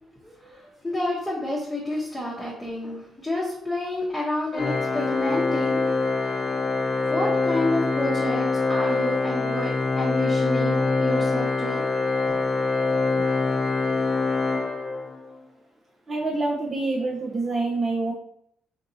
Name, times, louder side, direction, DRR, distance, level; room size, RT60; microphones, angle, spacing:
voice 1, 0.0-5.8 7.1-11.9, left 1 dB, 10° left, -7 dB, 0.9 m, -30 dB
Organ, 4.5-15.3, left 3 dB, 40° left, 0.4 m, -24 dB
voice 2, 16.1-18.1, right 2 dB, 35° right, -1 dB, 0.5 m, -26 dB
3.9 x 2.5 x 2.7 m, 0.71 s
cardioid pair, 90°, 0 cm